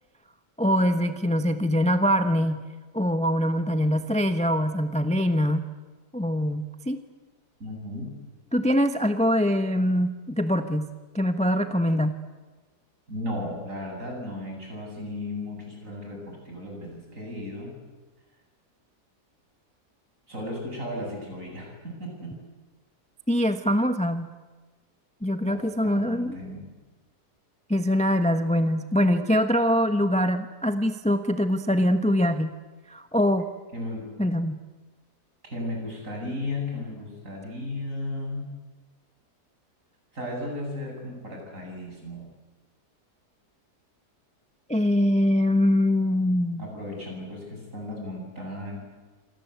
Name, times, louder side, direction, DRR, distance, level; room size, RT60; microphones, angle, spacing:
voice 1, 0.6-2.6 2.9-5.6 6.1-7.0 8.5-10.9 11.1-12.2 23.3-24.3 25.2-26.4 27.7-32.5 32.9-33.5 34.2-34.6 44.7-46.6, equal, 5° left, 8 dB, 0.9 m, -23 dB
voice 2, 7.6-8.1 13.1-17.7 20.3-22.3 25.4-26.7 33.7-34.1 35.4-38.5 40.1-42.3 46.6-48.8, left 1 dB, 50° right, 0 dB, 8.5 m, -35 dB
27.5 x 25.5 x 8.2 m, 1.3 s
omnidirectional pair, 1.7 m